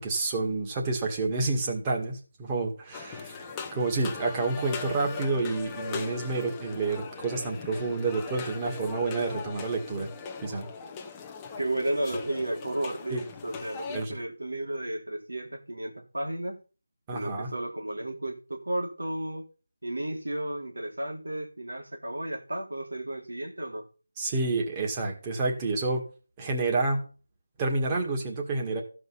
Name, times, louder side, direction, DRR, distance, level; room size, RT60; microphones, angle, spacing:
voice 1, 0.0-10.1 10.4-10.7 13.1-13.2 13.9-14.2 17.1-17.5 24.2-26.0 26.4-27.1 27.6-28.8, right 3 dB, 15° right, 1 dB, 1.9 m, -29 dB
sound 1, 2.9-14.0, left 6 dB, 15° left, 0.7 m, -40 dB
voice 2, 11.6-16.6 17.1-19.4 19.8-23.8, right 1 dB, 90° right, 3 dB, 3.4 m, -33 dB
14.0 x 5.4 x 5.6 m, 0.37 s
figure-of-eight pair, 170°, 0 cm